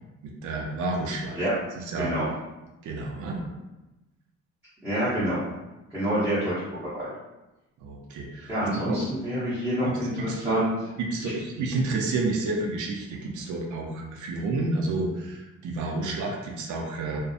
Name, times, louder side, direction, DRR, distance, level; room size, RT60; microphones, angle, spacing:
voice 1, 0.2-1.5 1.8-2.1 2.8-3.5 7.8-9.0 10.3-10.6 11.0-17.2, right 3 dB, 75° right, 1 dB, 0.5 m, -30 dB
voice 2, 2.0-2.3 4.8-5.5 5.9-7.1 8.5-10.7 11.2-11.3, equal, 5° right, -13 dB, 0.7 m, -27 dB
2.5 x 2.0 x 2.5 m, 1.0 s
cardioid pair, 150°, 30 cm